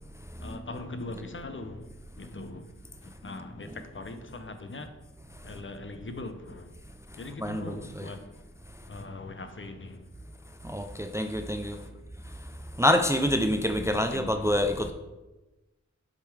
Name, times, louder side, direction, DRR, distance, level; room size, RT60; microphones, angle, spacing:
voice 1, 0.4-1.9 2.2-2.7 3.0-4.9 5.4-6.7 7.2-8.4 8.9-10.1 11.7-12.0 13.9-14.6, left 2 dB, 40° left, 0.6 m, -41 dB
voice 2, 7.4-8.0 10.6-11.8 12.8-14.9, left 1 dB, 10° right, 0.4 m, -26 dB
7.3 x 3.7 x 4.8 m
wide cardioid pair, 85°, 30 cm